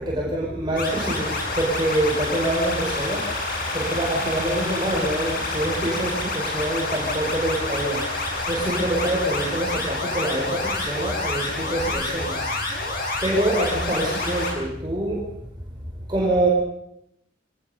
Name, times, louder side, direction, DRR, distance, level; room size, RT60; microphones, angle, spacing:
voice 1, 0.0-3.3 3.7-8.1 8.5-15.2 16.1-16.5, right 1 dB, 25° right, -3 dB, 5.2 m, -25 dB
sound 1, 0.8-14.5, left 2 dB, 50° left, 7.2 m, -28 dB
25.0 x 18.5 x 6.9 m, 0.79 s
head